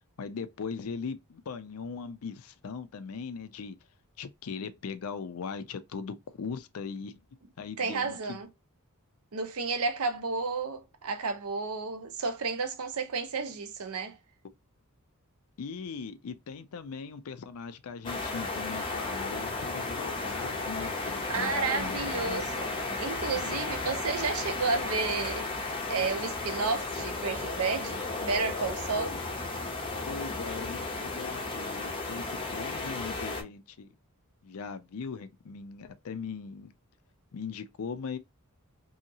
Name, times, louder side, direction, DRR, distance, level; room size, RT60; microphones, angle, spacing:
voice 1, 0.2-3.8 4.2-7.2 7.6-8.4 15.6-22.4 28.9-29.2 30.1-32.3 32.5-33.9 34.4-36.7 37.3-38.2, left 5 dB, 70° left, 0.4 m, -39 dB
voice 2, 7.8-8.5 9.3-14.2 21.3-22.6 23.0-25.5 25.9-29.1, right 4 dB, 70° right, 0.7 m, -31 dB
sound 1, 18.0-33.4, left 3 dB, 25° left, 0.6 m, -34 dB
2.8 x 2.7 x 2.6 m
head